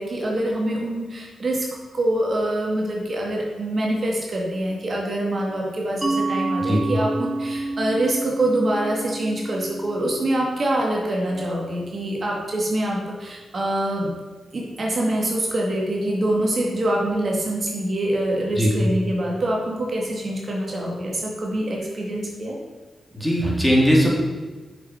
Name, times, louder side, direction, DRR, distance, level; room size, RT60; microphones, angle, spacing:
voice 1, 0.0-1.7 1.9-14.1 14.5-22.6, right 1 dB, 55° right, -2 dB, 2.2 m, -25 dB
Mallet percussion, 6.0-11.4, right 2 dB, 20° right, 2.2 m, -29 dB
voice 2, 23.1-24.1, equal, 5° left, -3 dB, 3.1 m, -19 dB
7.0 x 6.7 x 5.8 m, 1.3 s
supercardioid pair, 45°, 0 cm